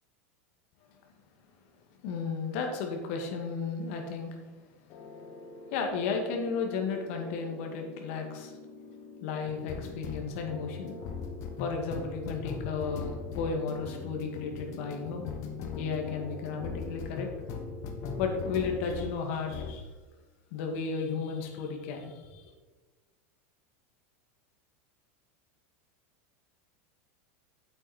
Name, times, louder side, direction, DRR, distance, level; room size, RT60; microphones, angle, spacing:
voice 1, 2.0-4.4 5.7-8.5 9.2-11.0 11.6-15.2 15.8-17.3 18.2-19.9 20.5-22.4, left 5 dB, 65° left, 2 dB, 2.2 m, -34 dB
sound 1, 4.9-19.2 19.5-19.8, left 5 dB, 45° left, 1.4 m, -40 dB
8.4 x 8.3 x 4.5 m, 1.3 s
supercardioid pair, 145°, 8 cm